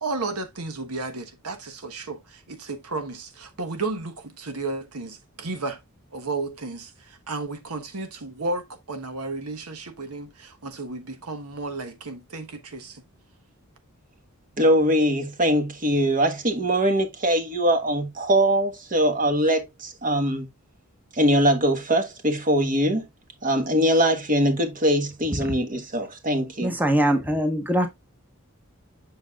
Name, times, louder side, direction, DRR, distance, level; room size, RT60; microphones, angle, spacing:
voice 1, 0.0-5.8 6.1-13.0, right 3 dB, 85° right, 1.2 m, -33 dB
voice 2, 14.6-20.5 21.1-23.1 23.4-26.7, equal, 40° right, 1.4 m, -22 dB
voice 3, 26.6-27.9, right 1 dB, 10° right, 1.1 m, -22 dB
7.8 x 6.2 x 2.3 m
head